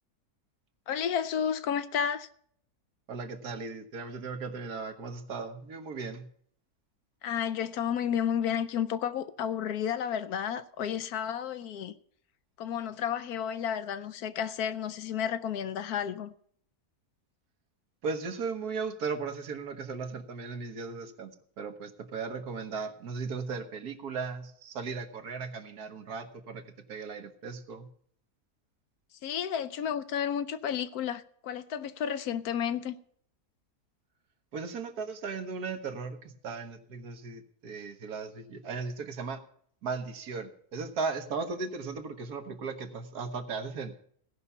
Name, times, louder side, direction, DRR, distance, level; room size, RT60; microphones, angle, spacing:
voice 1, 0.9-2.3 7.2-11.9 12.6-16.3 29.2-32.9, left 8 dB, 75° left, 1.2 m, -32 dB
voice 2, 3.1-6.3 18.0-26.6 26.9-27.9 34.5-39.4 39.8-44.0, right 4 dB, 80° right, 1.7 m, -37 dB
16.5 x 5.6 x 7.0 m
omnidirectional pair, 1.6 m